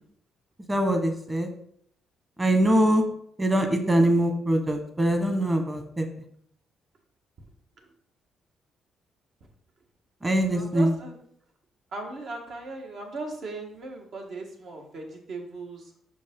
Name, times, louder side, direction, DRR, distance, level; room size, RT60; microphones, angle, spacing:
voice 1, 0.7-1.5 2.4-3.0 3.4-6.0 10.2-10.9, right 1 dB, 20° right, 6 dB, 1.3 m, -23 dB
voice 2, 10.5-11.2 11.9-15.8, right 3 dB, 65° right, 1 dB, 1.6 m, -38 dB
5.9 x 5.2 x 3.8 m, 0.66 s
cardioid pair, 90°, 0 cm